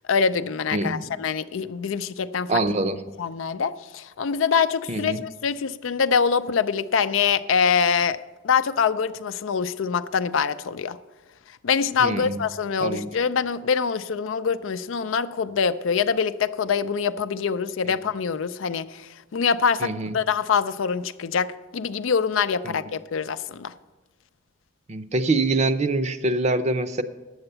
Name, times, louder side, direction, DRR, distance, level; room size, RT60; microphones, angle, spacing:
voice 1, 0.1-2.5 3.2-8.2 8.4-11.0 11.6-23.7, left 6 dB, 85° left, 13 dB, 0.5 m, -24 dB
voice 2, 0.7-1.1 2.5-3.0 4.9-5.2 12.0-12.4 12.8-13.1 19.8-20.2 22.6-22.7 24.9-27.0, right 2 dB, 35° right, 10 dB, 0.5 m, -24 dB
9.7 x 8.0 x 6.8 m, 1.2 s
head